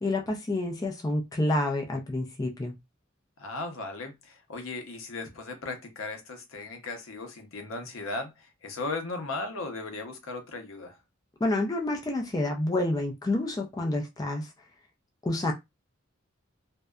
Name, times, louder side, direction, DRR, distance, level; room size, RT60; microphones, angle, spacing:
voice 1, 0.0-2.7 11.4-14.5 15.2-15.5, left 2 dB, 20° left, 0.4 m, -28 dB
voice 2, 3.4-11.0, left 3 dB, 75° left, 0.7 m, -37 dB
2.6 x 2.1 x 2.3 m
head